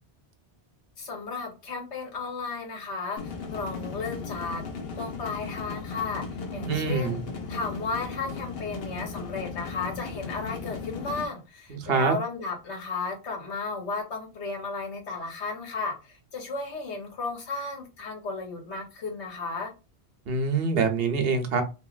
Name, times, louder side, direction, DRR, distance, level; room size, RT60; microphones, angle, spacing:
voice 1, 1.0-4.6 4.9-7.2 7.5-19.7, left 4 dB, 90° left, 1.2 m, -34 dB
sound 1, 3.2-11.2, left 4 dB, 65° left, 0.8 m, -36 dB
voice 2, 6.6-7.2 11.7-12.2 20.3-21.6, right 4 dB, 65° right, 0.9 m, -25 dB
2.9 x 2.7 x 2.4 m
omnidirectional pair, 1.1 m